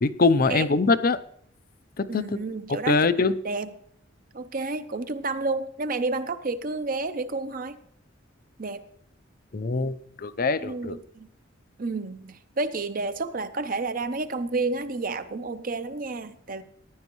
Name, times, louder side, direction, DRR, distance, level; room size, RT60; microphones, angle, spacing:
voice 1, 0.0-1.2 2.0-2.2 2.7-3.3 9.5-11.0, left 4 dB, 45° left, 14 dB, 0.6 m, -23 dB
voice 2, 2.1-3.1 3.4-3.7 4.3-7.8 8.6-8.8 10.6-11.3 11.8-16.6, right 3 dB, 45° right, 11 dB, 0.7 m, -30 dB
15.0 x 10.5 x 3.1 m, 0.67 s
head